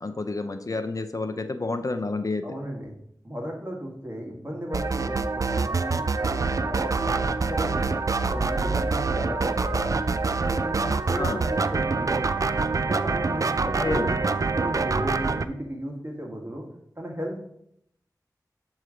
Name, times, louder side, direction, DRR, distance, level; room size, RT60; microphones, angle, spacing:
voice 1, 0.0-2.4 11.2-11.4 13.6-14.1, left 3 dB, 50° left, 9 dB, 0.5 m, -29 dB
voice 2, 2.4-2.9 3.2-7.9 8.3-10.0 10.4-12.4 12.8-16.7 17.0-17.4, equal, 30° right, -1 dB, 1.7 m, -35 dB
sound 1, 4.7-15.4, right 4 dB, 50° right, 0.3 m, -25 dB
7.6 x 3.2 x 5.0 m, 0.74 s
wide cardioid pair, 45°, 7 cm